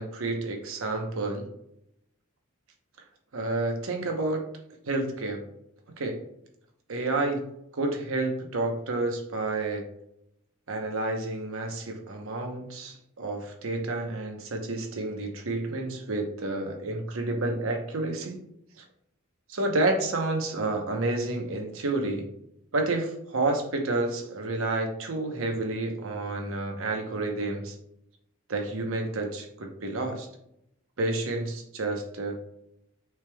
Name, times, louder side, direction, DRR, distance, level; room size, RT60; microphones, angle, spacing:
voice 1, 0.0-1.5 3.3-4.4 4.8-5.4 6.0-6.2 6.9-7.4 7.7-9.9 10.7-18.4 18.8-18.9 19.5-22.3 22.7-27.8 28.5-30.3 31.0-32.4, right 2 dB, 65° right, 3 dB, 0.9 m, -30 dB
6.3 x 3.4 x 2.2 m, 0.77 s
head